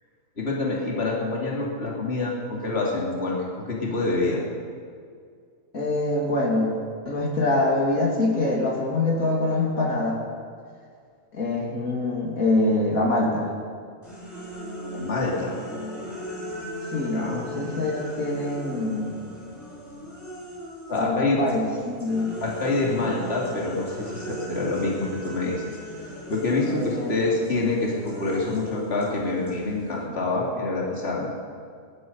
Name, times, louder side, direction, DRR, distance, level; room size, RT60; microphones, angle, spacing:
voice 1, 0.4-4.4 7.0-7.1 14.9-15.6 17.1-17.4 20.9-21.4 22.4-25.6 26.3-31.3, left 2 dB, 45° left, -3 dB, 2.9 m, -26 dB
voice 2, 5.7-6.8 7.1-10.2 11.3-13.5 16.9-19.2 20.9-22.3 26.6-27.2, left 2 dB, 75° left, -3 dB, 3.0 m, -24 dB
sound 1, 14.0-21.1 21.5-30.0, equal, 10° left, 5.8 m, -38 dB
21.0 x 12.0 x 5.5 m, 2.1 s
omnidirectional pair, 1.5 m